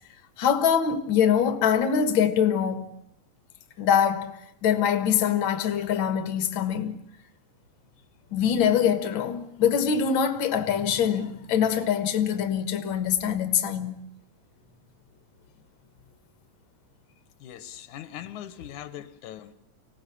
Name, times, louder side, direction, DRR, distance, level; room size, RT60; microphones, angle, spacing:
voice 1, 0.4-2.9 3.8-7.0 8.3-14.0, left 8 dB, 50° left, 1.8 m, -24 dB
voice 2, 17.4-19.5, left 11 dB, 90° left, 2.7 m, -40 dB
25.5 x 18.0 x 8.5 m
omnidirectional pair, 3.3 m